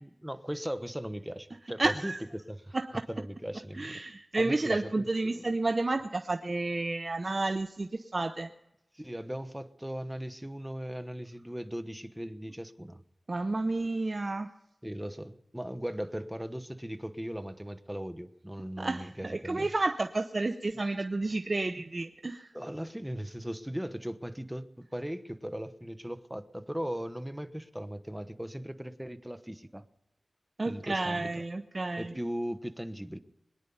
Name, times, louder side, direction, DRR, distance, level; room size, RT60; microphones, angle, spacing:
voice 1, 0.0-4.0 4.4-5.5 8.9-13.0 14.8-19.7 21.0-21.1 21.8-21.9 22.5-29.8 30.6-31.4 32.0-33.2, equal, 10° right, 11 dB, 1.1 m, -38 dB
voice 2, 1.8-2.2 2.7-3.0 3.7-8.5 13.3-14.5 18.8-22.5 30.6-32.1, right 2 dB, 50° right, 8 dB, 0.7 m, -31 dB
22.5 x 10.5 x 5.5 m, 0.90 s
cardioid pair, 50°, 0 cm